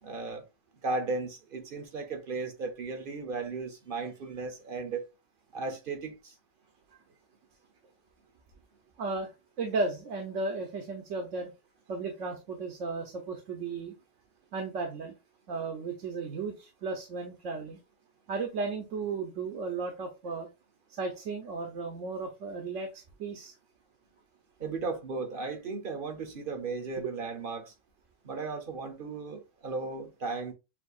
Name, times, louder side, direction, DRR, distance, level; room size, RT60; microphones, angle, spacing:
voice 1, 0.0-0.4 0.8-5.1 5.5-6.4 24.6-27.7 28.2-30.5, right 3 dB, 50° right, 0.9 m, -35 dB
voice 2, 9.0-9.3 9.6-11.5 11.9-14.0 14.5-15.1 15.5-17.8 18.3-20.5 20.9-22.9 23.2-23.5 27.0-27.1, right 3 dB, 85° right, 1.2 m, -34 dB
6.8 x 2.7 x 2.3 m
omnidirectional pair, 1.3 m